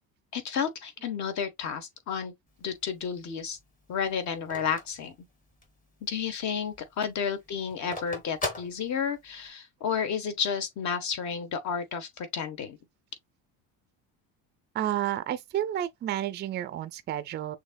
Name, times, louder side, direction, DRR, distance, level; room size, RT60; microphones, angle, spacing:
voice 1, 0.3-2.3 2.6-3.6 3.9-5.1 6.0-12.8, left 7 dB, 45° left, 1.2 m, -31 dB
Telephone, 2.5-5.9 6.3-6.4 6.6-9.5, left 3 dB, 20° left, 1.3 m, -39 dB
voice 2, 14.7-17.6, right 12 dB, 30° right, 0.4 m, -31 dB
6.4 x 2.8 x 2.3 m
cardioid pair, 145°, 38 cm